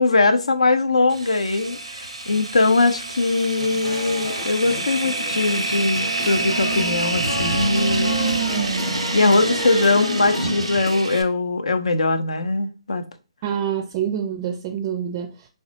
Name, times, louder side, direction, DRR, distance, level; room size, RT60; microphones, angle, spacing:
voice 1, 0.0-8.1 9.1-13.0, left 3 dB, 80° left, 0.4 m, -21 dB
sound 1, 1.1-11.2, right 3 dB, 80° right, 0.5 m, -26 dB
sound 2, 3.6-11.0, left 5 dB, 45° left, 0.7 m, -34 dB
voice 2, 13.4-15.5, right 9 dB, 30° right, 0.4 m, -26 dB
3.2 x 2.0 x 2.7 m
figure-of-eight pair, 140°, 3 cm